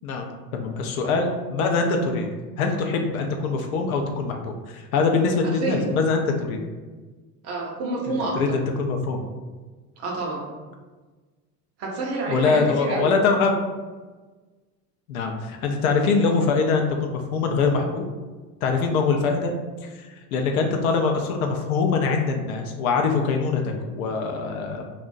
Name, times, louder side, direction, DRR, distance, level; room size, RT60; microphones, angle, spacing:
voice 1, 0.0-2.3 2.6-6.6 8.1-9.2 12.3-13.6 15.1-18.0 18.6-19.5 19.8-24.8, left 4 dB, 65° left, 3 dB, 0.5 m, -23 dB
voice 2, 7.4-8.5 10.0-10.5 11.8-13.1, right 3 dB, 30° right, -2 dB, 0.5 m, -28 dB
2.5 x 2.1 x 2.4 m, 1.3 s
figure-of-eight pair, 80°, 47 cm